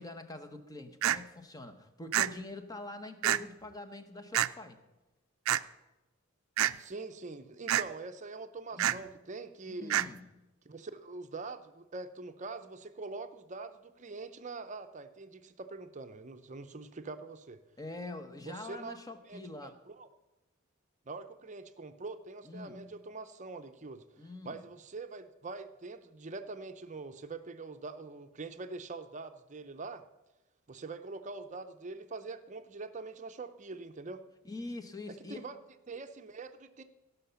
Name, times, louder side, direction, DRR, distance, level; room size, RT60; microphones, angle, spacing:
voice 1, 0.0-4.8 8.7-9.0 9.7-10.4 17.8-19.8 22.4-23.0 24.2-24.6 34.4-35.5, left 2 dB, 20° left, 8 dB, 0.9 m, -44 dB
sound 1, 1.0-1.2 2.1-2.3 3.2-3.4 4.3-4.5 5.4-5.6 6.6-6.7 7.7-7.8 8.8-9.0 9.9-10.1, right 11 dB, 75° right, 0.4 m, -27 dB
voice 2, 6.8-10.0 10.6-17.6 18.5-19.0 19.3-20.1 21.1-30.0 30.7-34.2 35.1-35.6 35.9-36.8, right 3 dB, 35° right, 9 dB, 0.6 m, -44 dB
16.5 x 5.8 x 6.8 m, 1.0 s
head